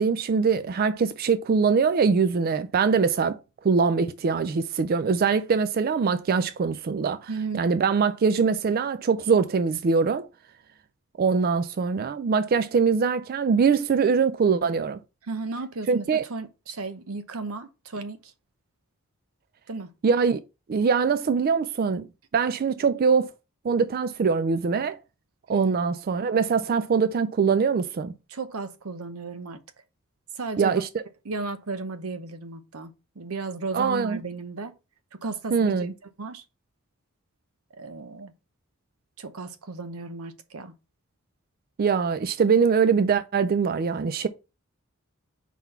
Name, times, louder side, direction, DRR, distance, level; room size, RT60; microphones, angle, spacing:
voice 1, 0.0-3.4 3.6-10.3 11.2-15.0 15.9-16.2 20.0-20.4 20.7-22.1 22.3-23.3 23.6-25.0 25.5-28.1 30.6-31.0 33.7-34.2 35.5-35.9 41.8-44.3, right 5 dB, 45° right, 0.3 m, -23 dB
voice 2, 7.3-7.7 15.3-18.3 19.7-19.9 25.5-25.8 28.3-29.6 30.3-30.8 31.2-34.7 35.1-35.8 36.2-36.4 37.8-38.3 39.2-40.7, right 3 dB, 90° right, 0.8 m, -34 dB
4.6 x 3.9 x 5.4 m
head